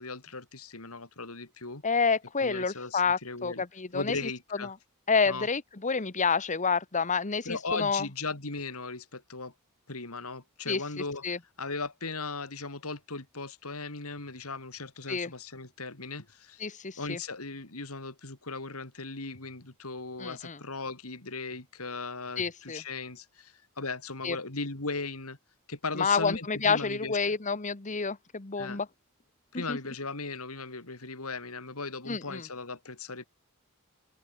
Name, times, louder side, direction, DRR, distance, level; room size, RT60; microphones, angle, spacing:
voice 1, 0.0-1.8 2.4-3.6 3.9-4.7 5.3-5.5 7.5-9.5 9.9-11.2 11.6-16.6 17.0-25.4 25.7-27.3 28.6-28.8 29.5-33.2, left 3 dB, 75° left, 3.6 m, -38 dB
voice 2, 1.8-4.3 4.6-4.7 5.1-8.0 10.7-10.8 11.2-11.4 15.1-15.3 16.6-17.2 20.2-20.6 22.4-22.8 24.2-24.4 26.0-28.9 29.5-29.8 32.1-32.4, left 5 dB, 35° left, 1.3 m, -29 dB
open air
head